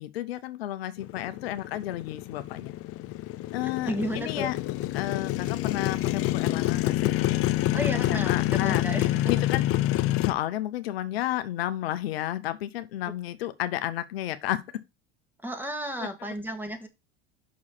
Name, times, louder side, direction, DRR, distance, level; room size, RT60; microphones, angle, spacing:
voice 1, 0.0-2.7 3.5-4.6 4.9-7.4 7.9-8.9 9.3-9.6 10.2-14.6 16.0-16.1, left 13 dB, 90° left, 0.8 m, -32 dB
Motorcycle, 1.0-10.3, left 15 dB, 50° left, 0.7 m, -27 dB
voice 2, 3.9-4.5 7.7-9.3 15.4-16.9, equal, 5° right, 1.9 m, -33 dB
6.1 x 4.8 x 5.7 m
supercardioid pair, 95°, 29 cm